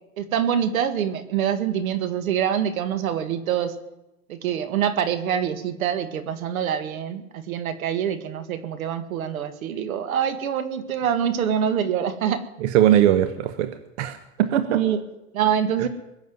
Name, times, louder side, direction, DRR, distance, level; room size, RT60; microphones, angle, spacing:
voice 1, 0.2-3.7 4.3-12.4 14.7-15.0 15.3-15.9, right 8 dB, 75° right, 11 dB, 2.0 m, -25 dB
voice 2, 12.6-13.7 14.0-14.8, right 11 dB, 50° right, 10 dB, 1.2 m, -20 dB
21.0 x 7.2 x 9.5 m, 0.94 s
supercardioid pair, 150°, 43 cm